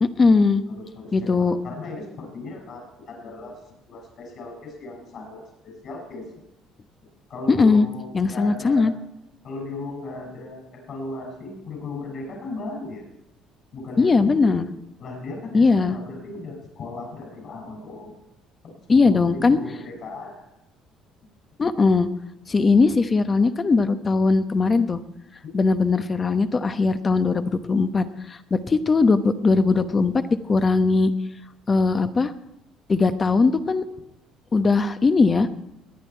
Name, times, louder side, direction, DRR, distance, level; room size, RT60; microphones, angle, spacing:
voice 1, 0.0-0.6 1.1-1.6 7.5-7.9 8.1-8.9 14.0-14.7 15.5-16.0 18.9-19.6 21.6-22.1 22.5-25.0 25.5-31.1 31.7-32.3 32.9-33.8 34.5-35.5, left 4 dB, 30° left, 10 dB, 1.0 m, -19 dB
voice 2, 0.8-3.5 3.9-6.3 7.3-8.9 9.4-13.0 13.7-14.6 15.0-18.1 19.0-20.3, left 2 dB, 55° left, 0 dB, 6.7 m, -36 dB
21.0 x 9.3 x 4.6 m, 0.88 s
supercardioid pair, 90°, 0 cm